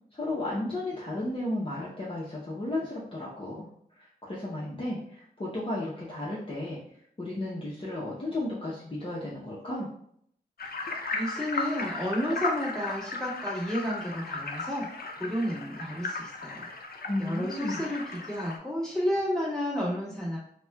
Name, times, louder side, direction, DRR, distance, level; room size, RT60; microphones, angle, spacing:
voice 1, 0.1-3.7 4.2-6.8 7.2-9.9 17.1-17.8, left 1 dB, 35° left, -7 dB, 0.7 m, -33 dB
sound 1, 10.6-18.6, left 3 dB, 65° left, 0.5 m, -36 dB
voice 2, 11.1-14.9 15.2-16.7 17.2-20.4, equal, 5° left, -8 dB, 1.4 m, -31 dB
4.1 x 2.2 x 2.2 m, 0.66 s
wide cardioid pair, 80°, 17 cm